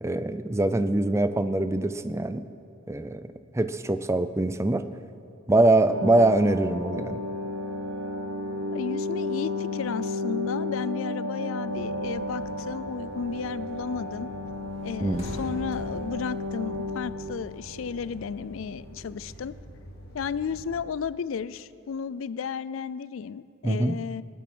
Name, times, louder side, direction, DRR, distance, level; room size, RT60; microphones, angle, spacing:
voice 1, 0.0-2.5 2.9-3.2 3.5-4.8 5.5-7.2 15.0-15.3 23.6-24.0, right 2 dB, 15° right, 11 dB, 0.4 m, -23 dB
sound 1, 5.9-18.9 19.2-19.3, left 2 dB, 90° right, 1.0 m, -33 dB
voice 2, 8.7-14.3 14.8-19.5 20.1-24.2, left 6 dB, 70° left, 17 dB, 0.4 m, -33 dB
sound 2, 11.6-20.8, equal, 50° left, 2.3 m, -47 dB
sound 3, 13.0-13.3 13.7-13.9 14.1-14.3 14.6-17.6 17.9-19.5, equal, 30° left, 2.9 m, -43 dB
19.5 x 9.2 x 6.2 m, 2.6 s
head